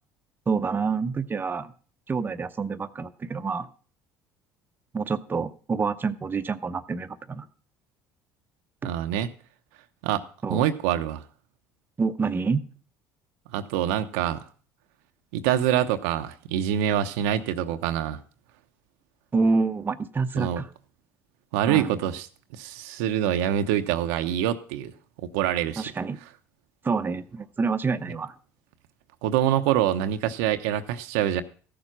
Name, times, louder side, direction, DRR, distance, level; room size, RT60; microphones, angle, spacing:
voice 1, 0.5-1.7 2.1-3.7 4.9-7.5 8.8-8.9 10.4-10.7 12.0-12.6 19.3-20.7 21.6-21.9 25.8-26.2 26.8-28.3, right 4 dB, 25° right, 8 dB, 0.8 m, -27 dB
voice 2, 8.8-9.3 10.0-10.2 10.5-11.2 13.5-14.4 15.3-18.2 20.3-20.6 21.5-22.3 22.5-24.9 25.2-25.8 29.2-31.4, right 11 dB, 80° right, 7 dB, 0.8 m, -25 dB
14.5 x 6.9 x 6.0 m, 0.41 s
supercardioid pair, 80°, 7 cm